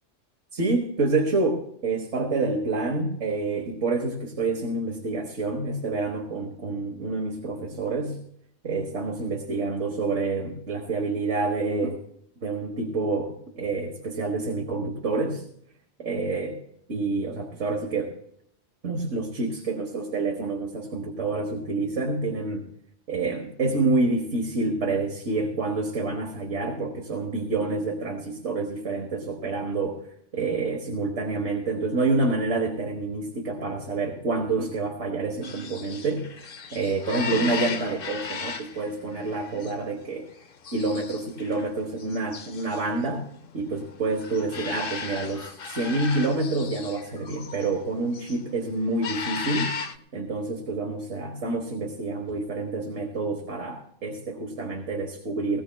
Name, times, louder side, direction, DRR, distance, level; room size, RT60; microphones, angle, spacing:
voice 1, 0.5-8.2 8.6-12.0 12.4-15.4 16.0-16.5 16.9-18.1 18.8-22.7 23.1-30.0 30.3-36.3 36.7-40.3 40.7-43.2 43.5-49.7 50.1-55.6, right 3 dB, 85° right, 0 dB, 1.7 m, -28 dB
sound 1, 35.4-47.7 48.0-48.5 48.8-49.9, left 5 dB, 55° left, 0.9 m, -36 dB
20.0 x 18.0 x 2.3 m, 0.70 s
omnidirectional pair, 1.2 m